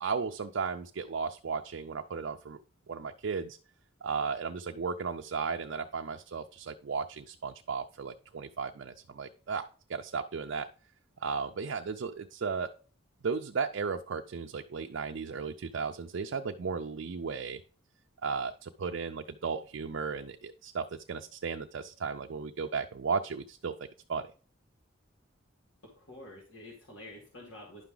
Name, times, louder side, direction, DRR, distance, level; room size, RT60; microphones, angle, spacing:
voice 1, 0.0-2.6 2.9-3.6 4.0-10.7 11.2-12.7 13.2-17.6 18.2-24.3, right 5 dB, 60° right, 5 dB, 0.4 m, -35 dB
voice 2, 25.8-27.8, left 1 dB, 60° left, -2 dB, 2.2 m, -48 dB
10.5 x 5.8 x 3.8 m, 0.40 s
head